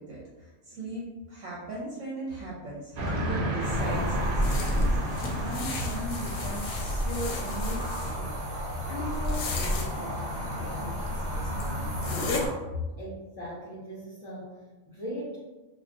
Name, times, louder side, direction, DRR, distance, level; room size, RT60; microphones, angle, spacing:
voice 1, 0.0-8.3 8.8-12.2, right 1 dB, 75° right, -6 dB, 1.1 m, -38 dB
Train, 3.0-6.9, right 1 dB, 60° right, 0.6 m, -33 dB
sound 1, 3.6-12.5, equal, 40° right, 0.9 m, -31 dB
sound 2, 4.4-8.1 9.1-9.9 11.1-11.2 11.6-11.7 12.0-12.4, left 4 dB, 75° left, 0.9 m, -36 dB
voice 2, 13.0-15.4, right 1 dB, 40° left, -8 dB, 0.6 m, -39 dB
2.5 x 2.3 x 3.6 m, 1.2 s
omnidirectional pair, 1.4 m